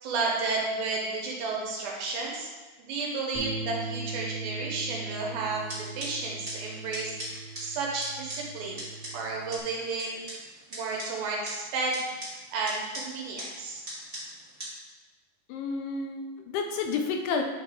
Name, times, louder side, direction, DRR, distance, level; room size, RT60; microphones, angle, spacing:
voice 1, 0.0-2.5 2.8-5.7 6.0-8.9 9.1-10.2 10.7-13.8, right 3 dB, 75° right, -2 dB, 2.5 m, -32 dB
Bass guitar, 3.3-9.6, right 3 dB, 60° right, 1.4 m, -40 dB
sound 1, 5.4-14.7, equal, 35° right, 0.9 m, -42 dB
voice 2, 15.5-17.4, left 5 dB, 80° left, 4 dB, 2.5 m, -30 dB
9.9 x 3.9 x 3.6 m, 1.3 s
omnidirectional pair, 4.7 m